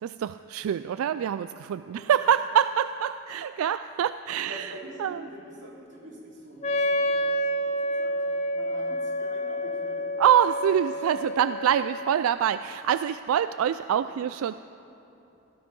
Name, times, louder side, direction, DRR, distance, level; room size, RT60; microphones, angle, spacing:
voice 1, 0.0-4.7 5.0-5.2 10.2-14.5, right 9 dB, 85° right, 13 dB, 0.3 m, -25 dB
voice 2, 4.3-10.2 10.9-11.3 13.6-14.2, right 1 dB, 55° right, -4 dB, 3.1 m, -45 dB
Wind instrument woodwind instrument, 6.6-12.3, equal, 30° left, 0.4 m, -29 dB
17.0 x 13.0 x 5.3 m, 3.0 s
head